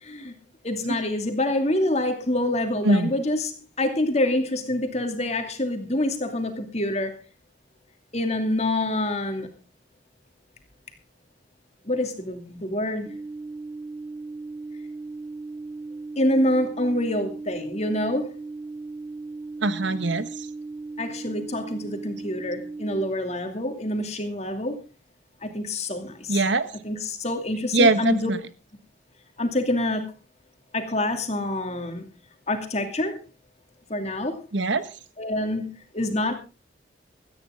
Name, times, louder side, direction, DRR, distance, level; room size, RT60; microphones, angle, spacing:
voice 1, 0.0-0.3 0.6-7.1 8.1-9.5 11.9-13.1 16.2-18.3 21.0-24.8 25.4-26.4 26.8-28.3 29.4-30.1 30.7-32.1 32.5-33.2 33.9-34.4 35.2-36.3, left 1 dB, 35° left, 5 dB, 2.6 m, -26 dB
sound 1, 13.1-23.1, right 3 dB, 10° right, 2.8 m, -37 dB
voice 2, 19.6-20.3 26.3-26.7 27.7-28.4 34.5-34.9, right 2 dB, 70° right, 13 dB, 1.2 m, -22 dB
17.5 x 13.5 x 3.7 m, 0.33 s
head